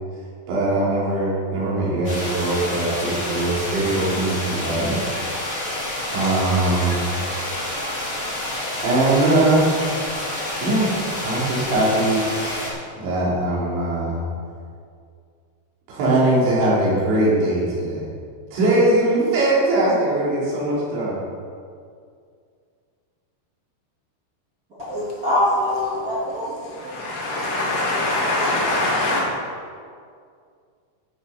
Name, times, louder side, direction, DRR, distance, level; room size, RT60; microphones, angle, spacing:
voice 1, 0.5-5.1 6.1-7.1 8.8-10.0 10.6-12.2 13.0-14.2 15.9-18.1 18.5-21.2, right 2 dB, 80° right, -7 dB, 5.5 m, -21 dB
sound 1, 2.0-12.7, left 1 dB, 30° left, 1.4 m, -28 dB
voice 2, 24.8-26.7, left 1 dB, 35° right, -9 dB, 1.5 m, -23 dB
voice 3, 26.7-29.2, left 2 dB, 85° left, -5 dB, 4.8 m, -23 dB
13.0 x 7.3 x 5.6 m, 2.2 s
omnidirectional pair, 5.2 m